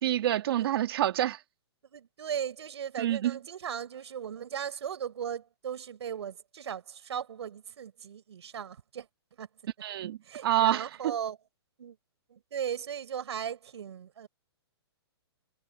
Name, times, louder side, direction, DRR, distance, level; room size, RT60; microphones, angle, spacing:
voice 1, 0.0-1.4 3.0-3.4 9.8-10.8, right 12 dB, 60° right, 1.9 m, -27 dB
voice 2, 1.9-9.1 9.4-9.5 10.2-11.4 11.8-12.0 12.3-14.3, right 8 dB, 75° right, 5.7 m, -37 dB
hypercardioid pair, 145°, 14 cm